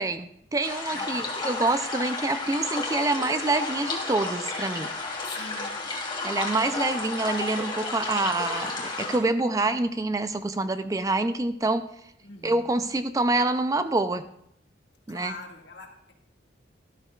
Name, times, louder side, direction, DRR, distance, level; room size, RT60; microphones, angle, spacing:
voice 1, 0.0-4.9 6.2-11.8 12.4-14.2 15.1-15.3, right 2 dB, 20° right, 10 dB, 0.4 m, -26 dB
sound 1, 0.6-9.2, left 3 dB, 25° left, 2.3 m, -32 dB
voice 2, 0.9-1.4 5.3-5.8 12.2-12.8 15.1-16.1, left 3 dB, 70° left, 1 dB, 1.9 m, -43 dB
13.0 x 12.5 x 2.4 m, 0.74 s
head